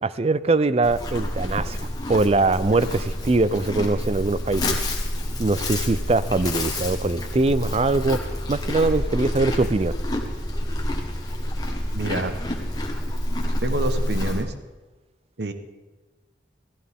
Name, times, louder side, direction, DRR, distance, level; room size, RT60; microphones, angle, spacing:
voice 1, 0.0-1.8 2.1-4.8 5.4-8.2 8.5-10.0, right 3 dB, 35° right, 15 dB, 0.4 m, -22 dB
Livestock farm animals working animals, 0.8-14.4, left 1 dB, 20° left, 1.4 m, -28 dB
voice 2, 11.9-12.4 13.6-14.5 15.4-15.5, right 2 dB, 70° right, 9 dB, 1.1 m, -27 dB
15.5 x 15.0 x 3.6 m, 1.2 s
head